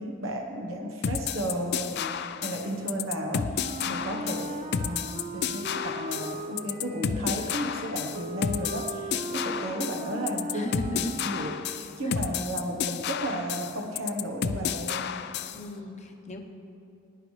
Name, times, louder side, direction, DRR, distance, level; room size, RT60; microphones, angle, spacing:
voice 1, 0.0-15.3, equal, 70° right, 2 dB, 1.1 m, -34 dB
sound 1, 1.0-15.6, left 7 dB, 50° left, 0.4 m, -31 dB
Wind instrument woodwind instrument, 3.6-11.9, right 1 dB, 30° right, 0.5 m, -39 dB
voice 2, 3.8-4.3 10.5-11.2 12.0-12.2 15.5-16.4, left 1 dB, 35° left, 3 dB, 0.9 m, -38 dB
20.0 x 10.0 x 3.2 m, 2.7 s
head